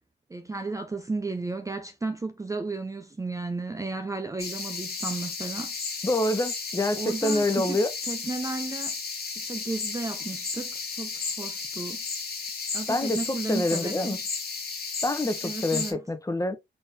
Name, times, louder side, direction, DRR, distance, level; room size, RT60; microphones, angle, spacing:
voice 1, 0.3-5.7 6.8-7.8 8.1-8.9 9.4-12.0 12.7-14.2 15.4-16.0, right 3 dB, 15° right, 0.5 m, -34 dB
sound 1, 4.4-15.9, left 4 dB, 55° left, 1.4 m, -34 dB
voice 2, 6.0-7.9 12.9-14.2 15.0-16.6, left 1 dB, 15° left, 0.8 m, -26 dB
4.1 x 3.6 x 2.7 m
cardioid pair, 80°, 20 cm